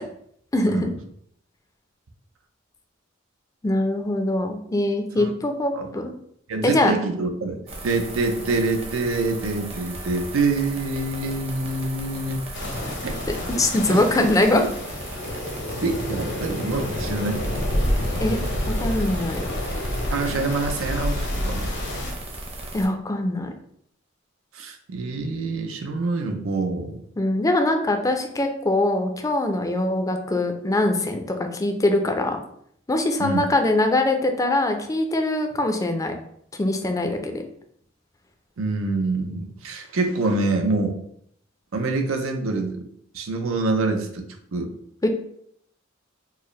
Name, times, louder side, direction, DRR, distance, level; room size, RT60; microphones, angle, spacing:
voice 1, 0.5-0.9 3.6-6.1 6.6-6.9 13.5-14.6 18.2-18.4 18.8-19.5 22.7-23.5 27.2-31.2 31.5-32.4 32.9-36.1 36.6-37.4 45.0-45.1, left 1 dB, 15° left, 5 dB, 0.4 m, -22 dB
voice 2, 6.5-12.4 13.0-13.2 13.9-14.3 14.5-14.7 15.8-17.4 20.1-21.7 24.5-27.0 33.2-33.4 38.6-41.0 41.7-42.8 43.1-44.7, right 3 dB, 85° right, 4 dB, 0.6 m, -26 dB
sound 1, 7.7-22.9, right 2 dB, 30° right, 0.7 m, -38 dB
sound 2, 12.5-22.1, left 1 dB, 60° left, 0.7 m, -28 dB
4.6 x 2.1 x 3.1 m, 0.68 s
head